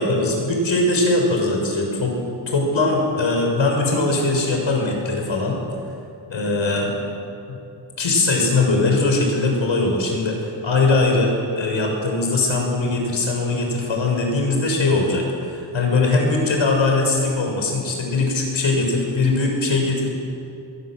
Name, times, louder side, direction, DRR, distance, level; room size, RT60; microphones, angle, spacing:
voice 1, 0.0-2.2 2.5-5.6 6.3-7.0 7.5-7.6 8.0-20.1, left 2 dB, 80° left, 1 dB, 6.8 m, -20 dB
23.0 x 22.0 x 7.9 m, 2.7 s
wide cardioid pair, 120°, 46 cm